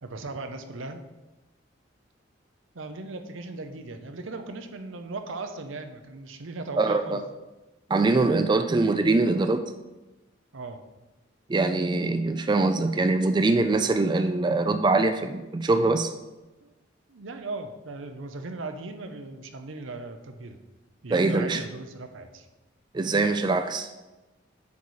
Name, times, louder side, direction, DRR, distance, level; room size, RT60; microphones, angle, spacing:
voice 1, 0.0-1.0 2.7-7.2 10.5-10.8 16.6-16.7 17.1-20.6 21.0-22.5, right 3 dB, 90° right, 7 dB, 0.8 m, -38 dB
voice 2, 6.8-7.2 7.9-9.7 11.5-16.1 21.1-21.6 22.9-23.9, right 3 dB, 25° right, 8 dB, 0.3 m, -23 dB
8.4 x 4.1 x 4.8 m, 1.1 s
head